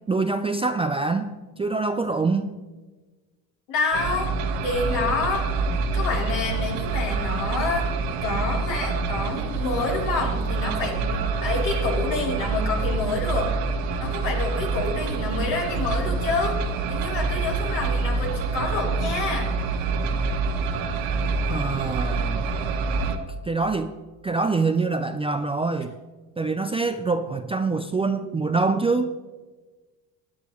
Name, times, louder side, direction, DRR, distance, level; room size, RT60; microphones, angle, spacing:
voice 1, 0.1-2.6 21.5-22.4 23.4-23.9 24.2-25.9 26.4-29.1, right 3 dB, 15° right, 7 dB, 0.4 m, -25 dB
voice 2, 3.7-4.3 4.6-5.5 5.9-7.9 8.2-13.5 14.0-16.6 16.9-19.5, left 3 dB, 65° left, -2 dB, 3.5 m, -28 dB
sound 1, 3.9-23.2, right 4 dB, 70° right, 1.2 m, -26 dB
16.0 x 10.0 x 3.1 m, 1.3 s
hypercardioid pair, 75°, 47 cm